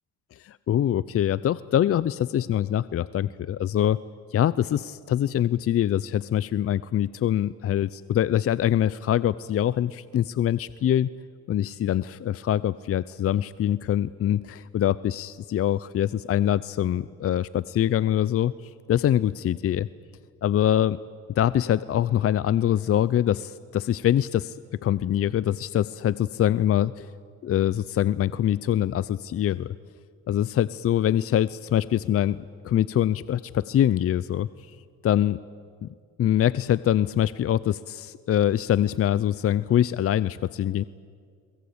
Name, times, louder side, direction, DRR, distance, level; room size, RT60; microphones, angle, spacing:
voice 1, 0.4-4.0 4.3-11.1 11.5-19.9 20.4-21.0 21.4-24.6 24.8-27.1 27.4-29.8 30.3-34.8 35.0-35.4 35.8-35.9 36.2-40.8, left 11 dB, 50° left, 18 dB, 0.5 m, -24 dB
23.0 x 22.0 x 8.7 m, 2.1 s
cardioid pair, 90°, 30 cm